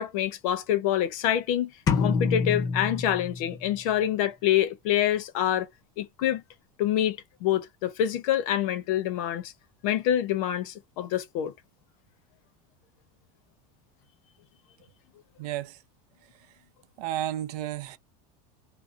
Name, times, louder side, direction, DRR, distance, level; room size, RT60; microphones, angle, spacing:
voice 1, 0.0-1.7 2.0-5.7 6.0-6.4 6.8-9.5 9.8-11.5, left 11 dB, 60° left, 0.6 m, -26 dB
sound 1, 1.9-3.8, left 5 dB, 20° left, 0.4 m, -27 dB
voice 2, 15.4-15.8 16.3-16.5 17.0-18.0, right 12 dB, 80° right, 0.5 m, -32 dB
2.4 x 2.1 x 2.5 m
supercardioid pair, 175°, 20 cm